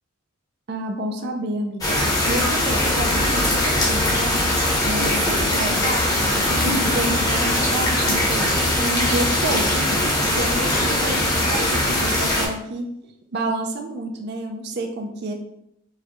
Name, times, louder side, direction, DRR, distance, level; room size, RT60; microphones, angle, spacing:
voice 1, 0.7-2.0 2.3-4.5 4.8-9.9 10.2-12.9 13.3-15.3, right 1 dB, 55° right, 4 dB, 0.5 m, -29 dB
sound 1, 1.8-12.5, left 1 dB, 20° left, 0.8 m, -21 dB
4.7 x 2.3 x 2.9 m, 0.78 s
head